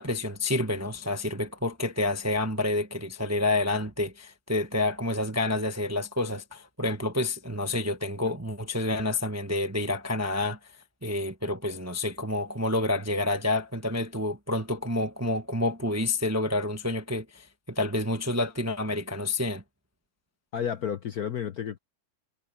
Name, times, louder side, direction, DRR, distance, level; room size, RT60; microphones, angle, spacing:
voice 1, 0.0-10.6 11.0-19.6, left 2 dB, 10° right, 0.8 m, -29 dB
voice 2, 20.5-21.8, left 8 dB, 55° left, 1.1 m, -31 dB
omnidirectional pair, 2.3 m